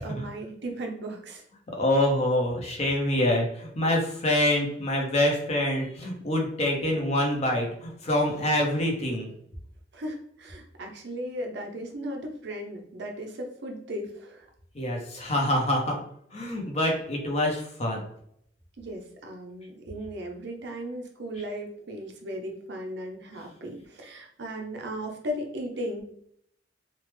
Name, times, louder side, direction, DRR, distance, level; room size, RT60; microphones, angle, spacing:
voice 1, 0.0-1.4 9.9-14.5 18.8-26.0, equal, 60° right, 3 dB, 0.6 m, -36 dB
voice 2, 1.7-9.3 14.7-16.0 16.3-18.0, left 1 dB, 35° left, 1 dB, 0.7 m, -26 dB
3.2 x 2.0 x 3.2 m, 0.68 s
head